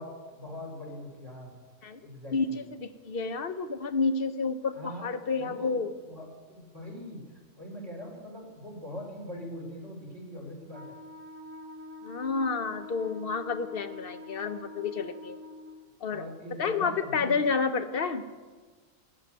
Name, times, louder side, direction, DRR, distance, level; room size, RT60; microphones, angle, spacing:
voice 1, 0.0-1.5 2.0-2.6 4.7-5.1 5.3-11.0 16.1-17.4, left 1 dB, 60° right, 0 dB, 4.4 m, -42 dB
voice 2, 2.8-5.9 12.0-15.4 16.0-16.2 16.6-18.2, left 4 dB, 50° left, 10 dB, 0.9 m, -30 dB
Wind instrument woodwind instrument, 10.7-15.9, left 1 dB, 30° right, 1.3 m, -45 dB
17.0 x 6.7 x 9.4 m, 1.4 s
omnidirectional pair, 1.4 m